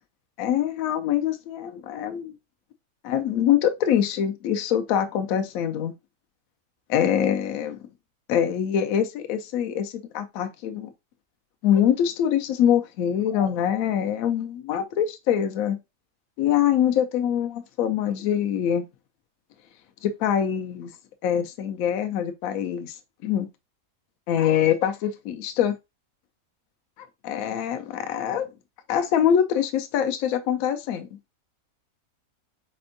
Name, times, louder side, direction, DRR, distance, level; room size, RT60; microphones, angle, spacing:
voice 1, 0.4-2.3 3.0-5.9 6.9-7.8 8.3-10.9 11.6-15.8 16.4-18.9 20.0-20.9 21.2-23.0 23.2-23.5 24.3-25.7 27.2-28.5 28.9-31.1, left 9 dB, 70° left, 0.9 m, -24 dB
4.3 x 4.2 x 2.6 m
omnidirectional pair, 1.6 m